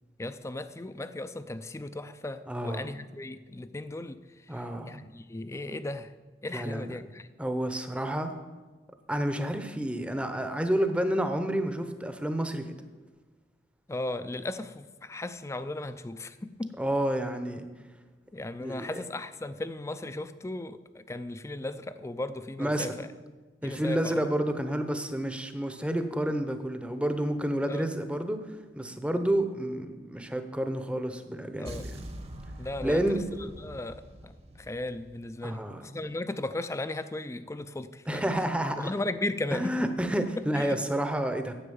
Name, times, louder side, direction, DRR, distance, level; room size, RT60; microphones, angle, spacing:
voice 1, 0.2-6.1 6.4-7.3 13.9-16.8 18.3-23.1 23.6-24.3 27.7-27.9 31.6-31.8 32.6-38.4 38.8-39.9 40.2-40.3 40.5-40.8, left 2 dB, 15° left, 12 dB, 0.4 m, -36 dB
voice 2, 2.5-3.0 4.5-5.0 6.5-6.8 7.4-8.3 9.1-12.8 16.8-17.6 18.6-18.9 22.6-22.9 23.6-28.4 28.8-31.9 32.8-33.2 35.4-36.1 38.1-38.9 39.5-41.5, right 1 dB, 5° right, 8 dB, 0.7 m, -30 dB
sound 1, 31.6-35.7, right 1 dB, 35° right, 1.0 m, -44 dB
10.0 x 7.9 x 7.0 m, 1.3 s
head